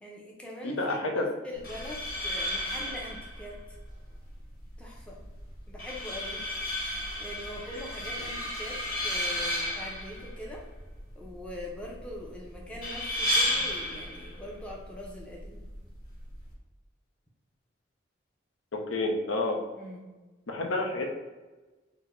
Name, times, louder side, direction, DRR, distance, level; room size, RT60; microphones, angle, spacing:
voice 1, 0.0-3.8 4.8-5.2 5.7-6.5 6.8-10.7 11.1-15.7 19.8-20.1, left 1 dB, 5° left, -3 dB, 0.6 m, -42 dB
voice 2, 0.6-1.2 18.7-19.6 20.5-21.1, left 2 dB, 85° left, 2 dB, 0.6 m, -29 dB
sound 1, 1.5-16.5, left 1 dB, 45° left, 1.3 m, -34 dB
4.2 x 2.1 x 4.3 m, 1.2 s
head